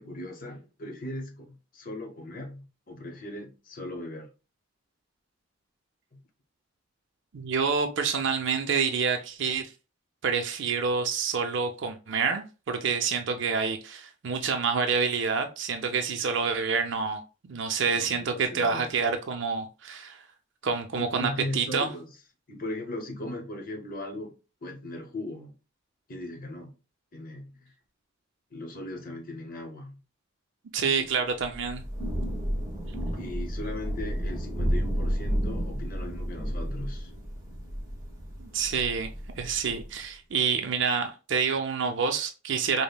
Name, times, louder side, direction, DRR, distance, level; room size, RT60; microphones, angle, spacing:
voice 1, 0.0-4.3 6.1-6.2 17.9-18.9 20.9-22.1 22.5-24.4 24.6-25.6 26.1-26.7 27.1-27.7 28.5-30.0 30.9-31.1 33.1-37.1, left 1 dB, 45° left, 0.8 m, -38 dB
voice 2, 7.3-9.7 10.2-20.2 20.6-21.9 30.7-31.8 38.4-39.1 39.4-42.8, right 5 dB, 65° right, 0.5 m, -28 dB
Thunder / Rain, 31.4-40.0, equal, 15° right, 1.3 m, -32 dB
5.2 x 2.0 x 2.3 m
head